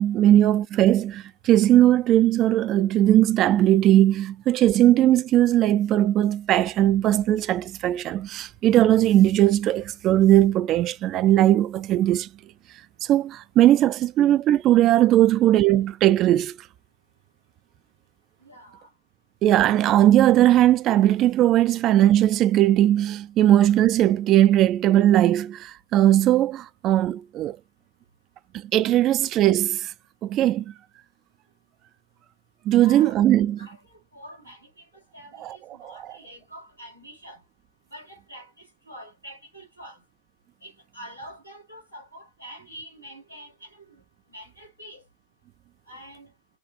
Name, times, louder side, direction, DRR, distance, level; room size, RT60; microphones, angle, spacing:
voice 1, 0.0-12.3 13.1-16.6 19.4-27.6 28.6-29.9 30.2-30.7 32.7-33.6 35.4-35.6 35.8-36.1, right 13 dB, 35° right, 0.4 m, -19 dB
voice 2, 18.4-18.9 32.7-33.2 33.6-37.4 37.9-40.0 40.6-44.0 44.3-45.0 45.9-46.3, equal, 85° left, 3.2 m, -45 dB
6.0 x 2.4 x 2.6 m
figure-of-eight pair, 90°, 0 cm